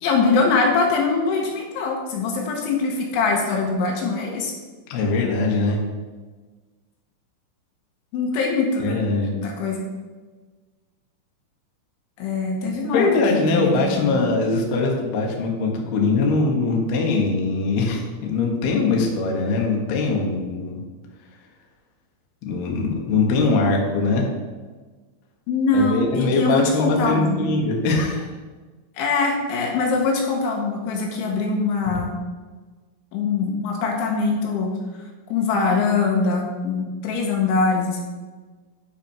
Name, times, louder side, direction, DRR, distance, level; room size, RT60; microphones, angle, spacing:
voice 1, 0.0-4.5 8.1-9.0 9.3-9.8 12.2-14.3 25.5-27.4 29.0-32.1 33.1-34.7 35.3-38.0, left 4 dB, 80° left, 0 dB, 3.5 m, -23 dB
voice 2, 4.9-5.8 8.8-9.3 12.9-20.8 22.4-24.3 25.7-28.3, left 3 dB, 65° left, 0 dB, 2.9 m, -22 dB
10.5 x 6.0 x 4.5 m, 1.3 s
omnidirectional pair, 5.5 m